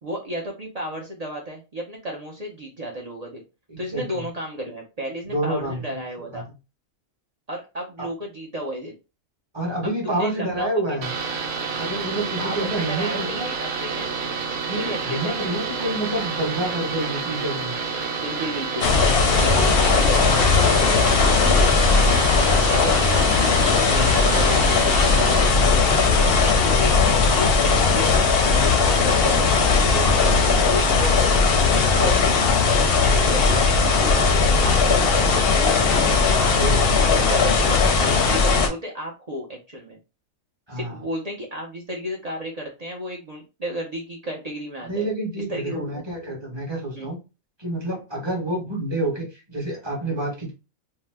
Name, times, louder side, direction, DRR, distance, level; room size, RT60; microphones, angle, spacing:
voice 1, 0.0-3.4 3.8-6.5 7.5-8.9 10.0-11.0 12.4-14.4 14.8-15.6 18.1-18.9 19.4-22.0 22.3-27.0 27.3-30.0 30.7-31.2 31.5-32.3 32.6-36.0 36.4-36.6 37.1-40.0 40.7-45.1 45.5-46.0 46.9-47.1, equal, 45° right, -2 dB, 0.5 m, -33 dB
voice 2, 3.7-4.3 5.2-6.0 6.3-6.4 8.0-8.1 9.5-11.1 11.8-13.5 14.7-17.8 28.8-29.0 29.9-30.7 36.6-36.9 40.7-41.0 44.8-47.2 47.6-50.5, right 1 dB, 20° right, -3 dB, 0.9 m, -28 dB
sound 1, 11.0-25.5, right 5 dB, 80° right, 1.0 m, -29 dB
sound 2, 18.8-38.7, left 4 dB, 55° left, 0.7 m, -18 dB
2.7 x 2.1 x 3.3 m, 0.29 s
omnidirectional pair, 1.4 m